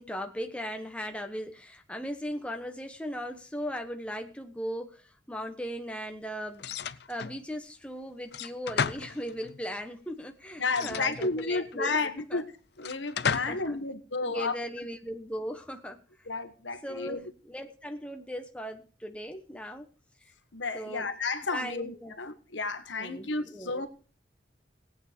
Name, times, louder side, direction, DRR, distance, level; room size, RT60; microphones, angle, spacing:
voice 1, 0.0-12.0 12.3-12.4 13.3-13.8 14.2-16.3 16.8-19.9 20.7-21.1 21.5-22.1 23.0-23.8, equal, 5° left, 1.1 m, -38 dB
sound 1, 6.6-7.4 8.3-9.6 10.7-11.7 12.8-13.7, left 6 dB, 60° left, 0.5 m, -34 dB
voice 2, 10.6-12.5 12.8-14.5 16.3-17.3 20.5-23.9, left 3 dB, 80° left, 1.4 m, -32 dB
18.0 x 8.7 x 5.1 m
head